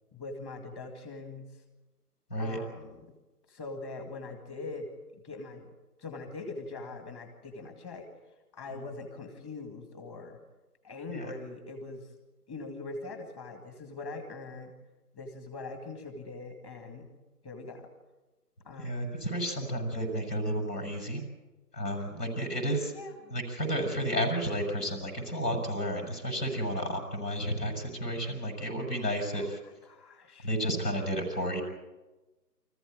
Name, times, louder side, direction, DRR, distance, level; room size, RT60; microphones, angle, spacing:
voice 1, 0.1-1.5 2.4-3.1 3.5-4.9 5.1-5.7 6.0-8.1 8.5-10.4 10.8-12.1 12.5-14.7 15.1-17.1 17.4-17.9 18.6-19.2 22.9-23.4 29.3-30.5, left 3 dB, 15° left, 5 dB, 2.1 m, -42 dB
voice 2, 18.8-21.2 21.7-22.9 23.3-29.6 30.4-31.6, equal, 80° left, 3 dB, 6.9 m, -32 dB
25.0 x 14.5 x 8.8 m, 1.1 s
figure-of-eight pair, 150°, 48 cm